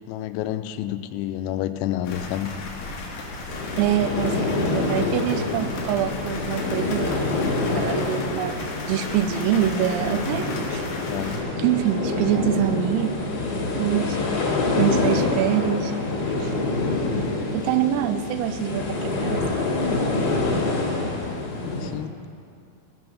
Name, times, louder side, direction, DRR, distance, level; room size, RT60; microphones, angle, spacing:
voice 1, 0.1-2.6 10.9-11.3 17.0-17.3 21.7-22.1, left 12 dB, 90° left, 11 dB, 3.2 m, -29 dB
sound 1, 2.0-11.4, left 3 dB, 65° left, 2.4 m, -35 dB
sound 2, 3.5-21.9, left 2 dB, 40° left, 2.5 m, -26 dB
voice 2, 3.8-10.9 11.6-13.1 13.8-14.2 14.8-15.9 16.4-16.5 17.5-19.6, right 10 dB, 85° right, 10 dB, 3.2 m, -25 dB
17.5 x 6.2 x 6.1 m, 2.3 s
omnidirectional pair, 5.9 m